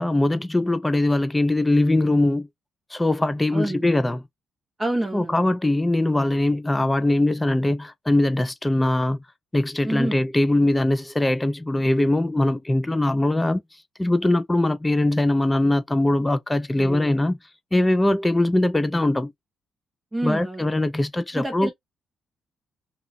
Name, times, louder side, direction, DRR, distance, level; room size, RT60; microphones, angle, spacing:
voice 1, 0.0-2.5 2.9-4.2 5.1-9.2 9.5-13.6 14.0-17.4 17.7-19.3 20.2-21.7, left 1 dB, 15° left, 0.5 m, -21 dB
voice 2, 3.5-3.9 4.8-5.5 9.8-10.2 16.8-17.1 20.1-20.7 21.3-21.7, right 1 dB, 15° right, 0.8 m, -28 dB
2.8 x 2.4 x 2.5 m
cardioid pair, 90°, 0 cm